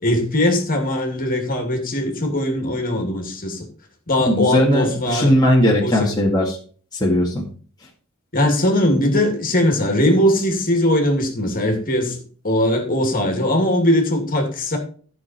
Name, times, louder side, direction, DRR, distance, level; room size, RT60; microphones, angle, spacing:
voice 1, 0.0-3.7 4.1-5.3 5.8-6.1 8.3-12.2 12.4-14.8, left 1 dB, 40° left, 2.5 m, -20 dB
voice 2, 4.2-6.6 6.9-7.5, left 1 dB, 20° left, 2.0 m, -18 dB
12.5 x 6.4 x 4.4 m
head